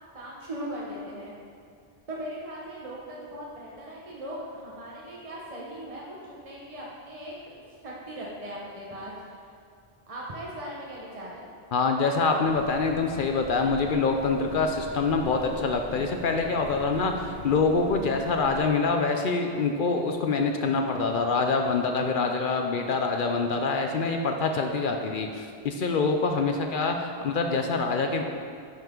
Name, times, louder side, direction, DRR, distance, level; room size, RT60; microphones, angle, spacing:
voice 1, 0.1-1.3 2.1-9.3 10.1-11.5, right 1 dB, 35° right, -5 dB, 1.1 m, -39 dB
voice 2, 11.7-28.2, left 4 dB, 60° left, 4 dB, 0.7 m, -25 dB
sound 1, 12.4-18.7, left 1 dB, 30° left, 1.1 m, -43 dB
10.5 x 5.8 x 3.7 m, 2.4 s
omnidirectional pair, 1.0 m